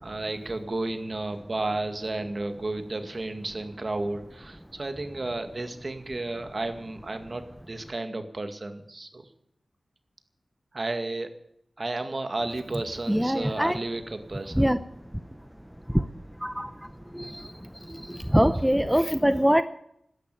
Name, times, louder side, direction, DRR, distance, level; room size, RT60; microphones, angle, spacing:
voice 1, 0.0-9.3 10.7-11.3 11.8-14.6, right 2 dB, 45° right, 8 dB, 2.0 m, -32 dB
voice 2, 13.1-13.8 14.6-14.8 15.9-16.0 16.4-16.7 17.2-17.5 18.1-19.6, equal, 5° right, 12 dB, 0.7 m, -23 dB
13.0 x 11.0 x 9.1 m, 0.74 s
wide cardioid pair, 60°, 0 cm